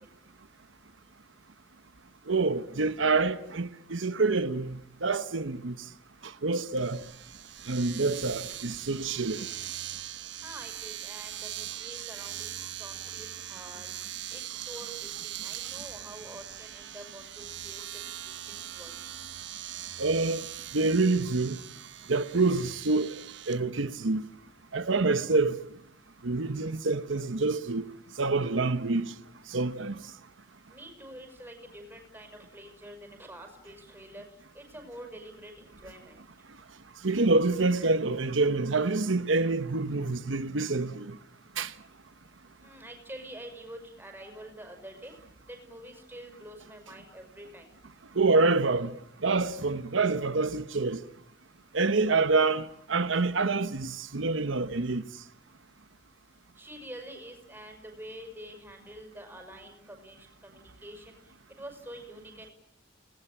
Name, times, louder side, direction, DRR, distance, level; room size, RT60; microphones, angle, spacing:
voice 1, 2.3-5.9 6.2-7.0 7.7-9.5 20.0-20.4 20.7-21.6 22.1-23.2 23.5-24.3 24.7-25.6 26.2-27.9 28.2-29.1 29.5-30.0 37.0-41.2 41.6-41.7 48.1-48.9 49.2-51.0 51.7-55.0, right 3 dB, 90° right, 1.1 m, -27 dB
Domestic sounds home sounds, 6.8-23.6, right 12 dB, 65° right, 1.2 m, -41 dB
voice 2, 10.4-13.9 14.3-17.8 18.2-19.0 30.7-34.3 34.5-36.2 42.6-45.1 45.5-47.7 56.6-62.5, right 1 dB, 10° right, 5.9 m, -47 dB
30.0 x 19.5 x 8.9 m
head